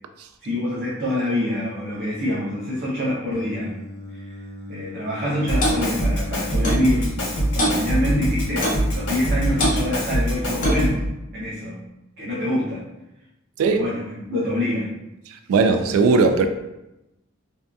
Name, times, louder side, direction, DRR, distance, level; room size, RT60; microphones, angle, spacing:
voice 1, 0.4-3.7 4.1-4.3 4.7-7.1 7.5-11.0 11.3-11.8 12.2-12.8 13.6-14.9, left 1 dB, 50° right, -9 dB, 0.6 m, -26 dB
Singing, 3.3-9.8, left 4 dB, 35° right, 1.1 m, -38 dB
Drum kit, 5.5-11.1, right 1 dB, 85° left, 0.9 m, -24 dB
Clock, 5.6-5.8 6.6-6.9 7.6-7.8 8.6-8.9 9.6-9.8 10.6-10.9, equal, 35° left, 0.5 m, -22 dB
voice 2, 15.5-16.5, right 4 dB, 85° right, 8 dB, 0.3 m, -17 dB
2.7 x 2.3 x 2.3 m, 0.93 s
head